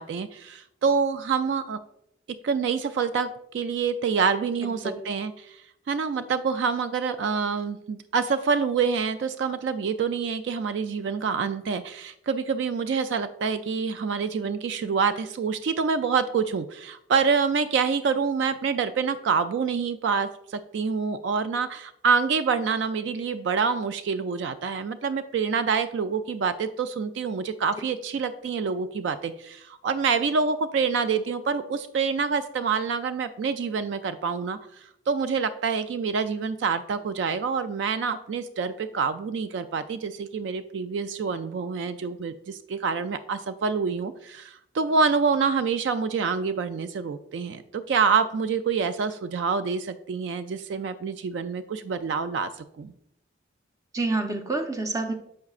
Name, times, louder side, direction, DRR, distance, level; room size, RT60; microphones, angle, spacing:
voice 1, 0.0-1.8 2.4-5.6 5.9-52.9, right 5 dB, 65° right, 11 dB, 0.3 m, -27 dB
voice 2, 4.6-5.0 53.9-55.1, right 3 dB, 20° right, 3 dB, 0.6 m, -28 dB
7.4 x 5.8 x 2.4 m, 0.75 s
head